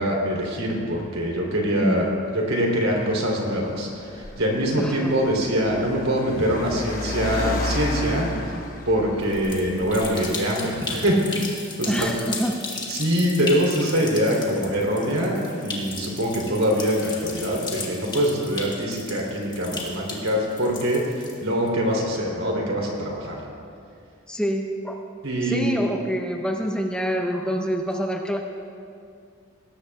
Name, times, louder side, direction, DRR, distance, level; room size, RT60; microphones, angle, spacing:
voice 1, 0.0-2.1 2.3-8.5 8.9-12.1 12.9-23.4 25.2-25.7, equal, 75° right, -2 dB, 3.4 m, -24 dB
voice 2, 1.8-2.1 4.8-5.1 11.9-12.5 24.3-25.0 25.4-28.4, equal, 5° left, 2 dB, 0.6 m, -26 dB
Car, 2.4-10.3, left 1 dB, 40° left, 1.1 m, -33 dB
sound 1, 9.2-21.7, left 3 dB, 20° left, 1.6 m, -35 dB
19.5 x 17.5 x 2.4 m, 2.4 s
head